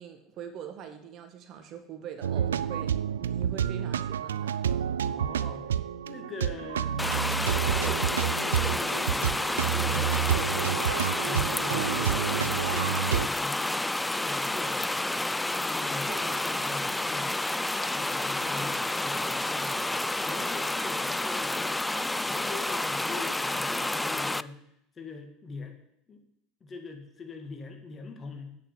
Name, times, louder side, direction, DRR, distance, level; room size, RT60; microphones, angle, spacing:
voice 1, 0.0-4.6 16.1-16.5, right 8 dB, 50° right, 7 dB, 1.6 m, -43 dB
sound 1, 2.2-13.3, right 9 dB, 85° right, 0.4 m, -29 dB
voice 2, 5.0-5.7 6.0-7.1 7.8-15.0 15.6-17.4 17.8-19.8 20.2-21.8 22.2-24.6 25.0-25.8 26.1-26.2 26.6-28.6, left 3 dB, 30° left, 5 dB, 2.1 m, -42 dB
sound 2, 7.0-24.4, left 2 dB, 10° left, 0.3 m, -30 dB
8.7 x 6.7 x 8.1 m, 0.76 s
hypercardioid pair, 80°, 0 cm